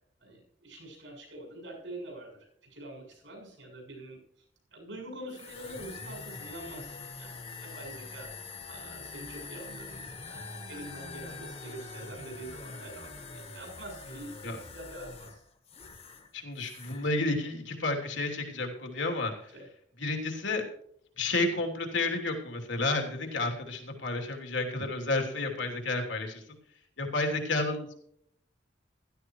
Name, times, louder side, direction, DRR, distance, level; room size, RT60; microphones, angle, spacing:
voice 1, 0.2-4.2 4.7-8.3 8.7-15.4 19.5-19.7, right 1 dB, 80° right, 0 dB, 6.9 m, -45 dB
sound 1, 5.3-16.3 16.6-17.1, left 4 dB, 35° left, 1.5 m, -44 dB
voice 2, 16.3-19.3 20.0-20.6 21.2-26.4 27.0-27.9, left 2 dB, 75° left, 2 dB, 3.1 m, -31 dB
16.0 x 13.5 x 3.1 m, 0.68 s
head